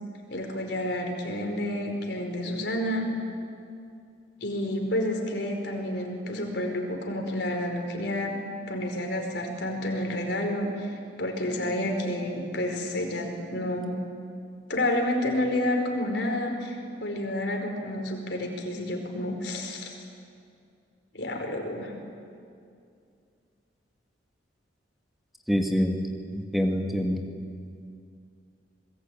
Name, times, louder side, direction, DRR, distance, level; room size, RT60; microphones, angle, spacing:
voice 1, 0.3-3.1 4.4-8.4 8.7-10.9 11.2-13.9 14.7-19.9 21.1-21.9, left 1 dB, 60° left, 2 dB, 4.8 m, -30 dB
voice 2, 25.5-26.0 26.3-27.2, equal, ahead, 3 dB, 2.1 m, -25 dB
26.5 x 21.5 x 9.2 m, 2.4 s
head